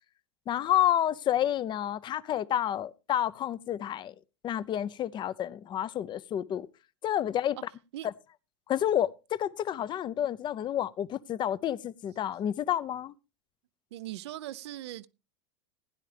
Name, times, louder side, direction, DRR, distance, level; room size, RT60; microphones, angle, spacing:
voice 1, 0.5-4.1 4.4-6.7 7.0-7.6 8.0-8.1 8.7-13.1, left 11 dB, 35° left, 0.7 m, -29 dB
voice 2, 13.9-15.1, right 14 dB, 75° right, 0.7 m, -39 dB
16.0 x 10.0 x 3.4 m
hypercardioid pair, 110°, 14 cm